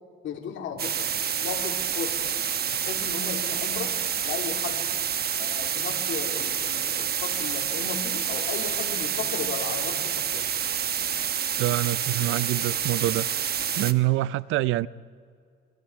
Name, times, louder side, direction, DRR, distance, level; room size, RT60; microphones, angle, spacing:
voice 1, 0.2-1.1 1.4-2.3 2.6-3.9 4.2-4.9 5.4-10.5, left 6 dB, 75° left, 3.2 m, -35 dB
sound 1, 0.8-13.9, right 8 dB, 50° right, 1.1 m, -28 dB
voice 2, 11.6-13.3 13.8-14.9, right 17 dB, 85° right, 0.5 m, -25 dB
28.0 x 24.5 x 4.7 m
cardioid pair, 90°, 20 cm